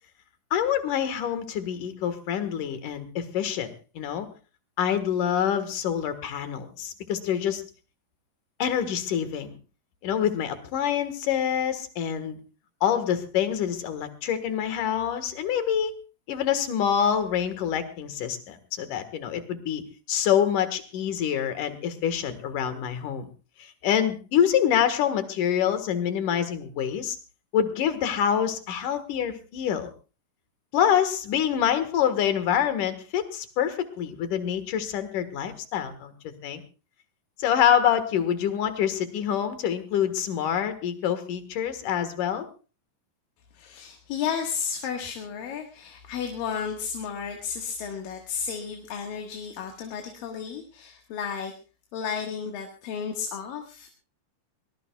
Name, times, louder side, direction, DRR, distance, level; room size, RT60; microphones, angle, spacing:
voice 1, 0.5-3.7 4.0-4.3 4.8-7.6 8.6-9.5 10.0-12.4 12.8-15.9 16.3-19.8 20.1-23.2 23.6-27.2 27.5-29.9 30.7-36.1 36.4-36.6 37.4-42.5, left 9 dB, 70° left, 10 dB, 3.0 m, -26 dB
voice 2, 43.5-51.5 51.9-53.9, left 7 dB, 85° left, 3 dB, 3.3 m, -33 dB
23.0 x 20.0 x 2.3 m, 0.32 s
omnidirectional pair, 3.8 m